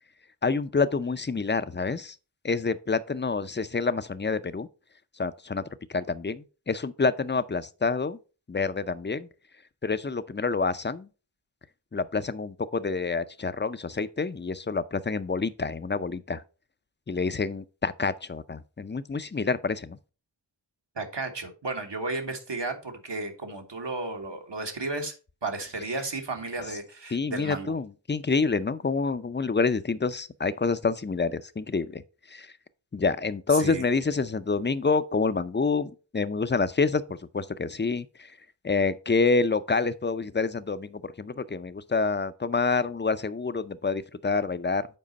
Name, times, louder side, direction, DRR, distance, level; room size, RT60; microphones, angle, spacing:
voice 1, 0.4-2.2 2.4-4.7 5.2-5.6 5.9-8.2 8.5-9.3 9.8-11.1 11.9-16.4 17.1-20.0 27.1-32.0 32.3-32.5 32.9-37.0 37.3-38.3 38.6-44.9, left 4 dB, 25° left, 0.5 m, -27 dB
voice 2, 20.9-25.1 25.4-27.7 33.5-33.8, right 3 dB, 70° right, 1.4 m, -33 dB
7.5 x 4.9 x 4.0 m
wide cardioid pair, 45°, 45 cm